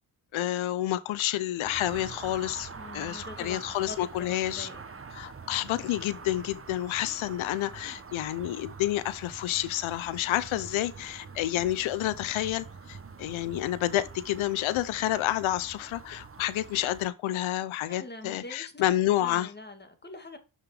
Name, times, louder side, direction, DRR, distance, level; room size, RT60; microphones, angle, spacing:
voice 1, 0.3-4.7 5.1-19.5, left 14 dB, 80° left, 0.7 m, -29 dB
sound 1, 1.6-17.1, right 5 dB, 30° right, 1.1 m, -45 dB
voice 2, 2.8-4.8 17.9-18.9 19.2-20.4, left 2 dB, 20° left, 2.0 m, -44 dB
6.2 x 5.8 x 4.9 m
supercardioid pair, 50°, 47 cm